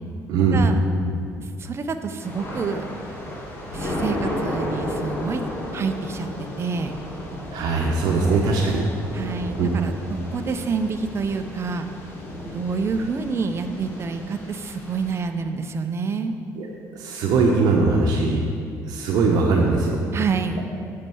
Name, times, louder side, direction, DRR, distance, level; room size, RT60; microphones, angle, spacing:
voice 1, 0.3-0.6 7.5-8.8 9.6-9.7 16.6-16.7 16.9-18.4 18.8-20.0, right 4 dB, 75° right, 0 dB, 1.0 m, -20 dB
voice 2, 1.4-2.8 3.7-5.5 5.7-7.0 9.1-11.9 12.5-16.4 20.1-20.7, right 5 dB, 40° right, 7 dB, 0.8 m, -28 dB
Thunder / Rain, 2.2-15.2, left 1 dB, 30° left, 2.8 m, -33 dB
8.7 x 5.7 x 7.8 m, 2.4 s
cardioid pair, 95°, 7 cm